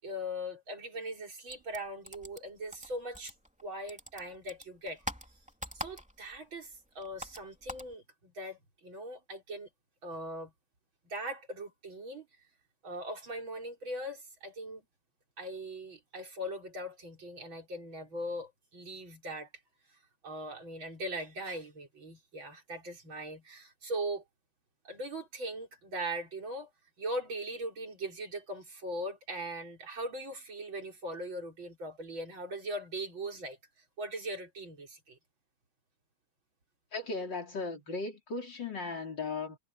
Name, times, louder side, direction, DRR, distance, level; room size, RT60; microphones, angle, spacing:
voice 1, 0.0-3.3 3.6-5.0 5.7-9.7 10.0-10.5 11.0-12.3 12.8-14.8 15.4-19.5 20.2-24.2 24.8-26.7 27.0-33.6 34.0-35.2, right 1 dB, 80° right, 5.8 m, -40 dB
sound 1, 1.5-3.6 3.9-6.4 6.6-7.9, equal, 5° right, 2.9 m, -43 dB
voice 2, 36.9-39.6, left 3 dB, 60° left, 4.6 m, -37 dB
omnidirectional pair, 2.1 m